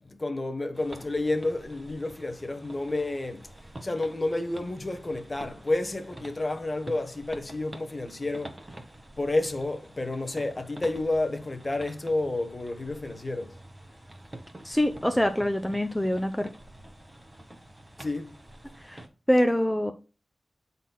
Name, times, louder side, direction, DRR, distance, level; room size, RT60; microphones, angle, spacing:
voice 1, 0.0-8.6 9.2-13.6 18.0-18.3, left 2 dB, 35° left, 1.2 m, -30 dB
sound 1, 0.7-19.1, right 1 dB, 20° right, 1.6 m, -47 dB
voice 2, 14.6-16.5 18.8-19.9, equal, 5° left, 0.7 m, -25 dB
12.0 x 4.2 x 2.3 m
wide cardioid pair, 60°, 0 cm